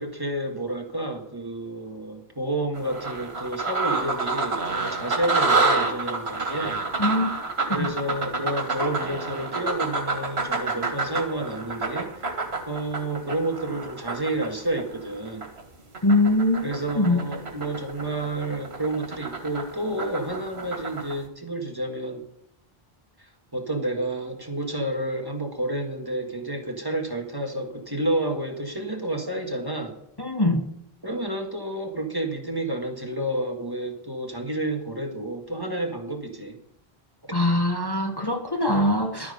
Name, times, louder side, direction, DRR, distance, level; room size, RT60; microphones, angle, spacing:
voice 1, 0.0-6.8 7.7-12.1 12.7-15.5 16.6-22.3 23.5-30.0 31.0-36.6 37.3-37.4, right 1 dB, 20° right, 2 dB, 1.8 m, -30 dB
sound 1, 2.8-15.6 15.9-21.1, right 3 dB, 80° right, 2.2 m, -28 dB
voice 2, 7.0-7.3 7.8-7.9 16.0-17.2 30.2-30.7 37.3-39.3, left 1 dB, 25° left, 2 dB, 1.3 m, -22 dB
12.0 x 9.3 x 5.4 m, 0.76 s
omnidirectional pair, 1.0 m